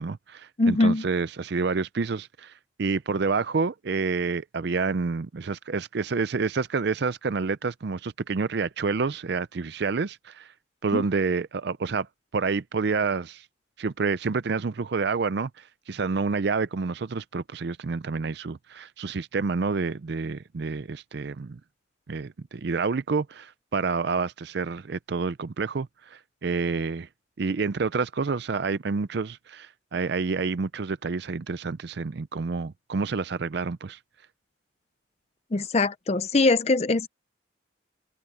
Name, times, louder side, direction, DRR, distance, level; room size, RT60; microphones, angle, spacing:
voice 1, 0.0-2.5 2.8-10.5 10.8-12.1 12.3-13.5 13.8-21.6 22.1-27.1 27.4-34.0, right 4 dB, 55° right, 0.5 m, -28 dB
voice 2, 0.6-1.0 10.9-11.0 35.5-37.1, left 2 dB, 30° left, 0.5 m, -22 dB
open air
head